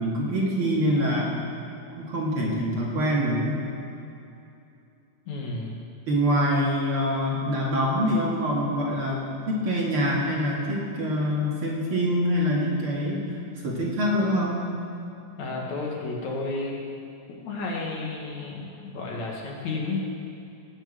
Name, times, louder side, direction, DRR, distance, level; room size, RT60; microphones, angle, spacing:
voice 1, 0.0-1.4 2.0-3.6 6.1-9.2 9.5-13.2 13.6-14.6, equal, 50° right, -4 dB, 2.7 m, -25 dB
voice 2, 5.3-5.8 15.4-16.8 17.4-20.0, left 3 dB, 70° left, -2 dB, 3.3 m, -32 dB
18.0 x 6.5 x 7.8 m, 2.7 s
omnidirectional pair, 3.4 m